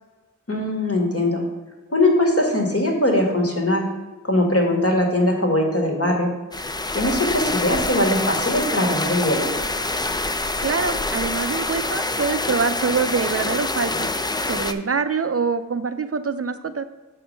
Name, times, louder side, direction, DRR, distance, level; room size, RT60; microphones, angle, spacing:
voice 1, 0.5-1.4 1.9-3.8 4.2-6.3 6.9-9.5, left 1 dB, 50° left, 1 dB, 1.5 m, -20 dB
sound 1, 6.5-14.7, left 2 dB, 15° left, 0.4 m, -26 dB
voice 2, 10.6-14.1 14.5-16.8, right 5 dB, 50° right, 10 dB, 0.4 m, -24 dB
6.4 x 4.3 x 6.4 m, 1.2 s
wide cardioid pair, 65°, 31 cm